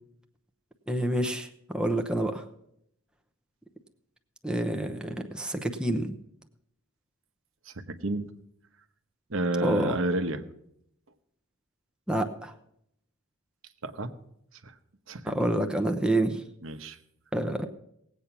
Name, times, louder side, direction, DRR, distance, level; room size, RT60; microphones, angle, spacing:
voice 1, 0.9-2.4 4.4-6.1 9.6-9.9 12.1-12.5 15.2-16.4 17.3-17.7, right 1 dB, 5° right, 4 dB, 0.8 m, -28 dB
voice 2, 9.3-10.4 13.8-14.1 14.6-14.7 15.1-15.6 16.6-17.0, right 2 dB, 70° right, 8 dB, 1.1 m, -30 dB
18.5 x 8.3 x 5.9 m, 0.76 s
head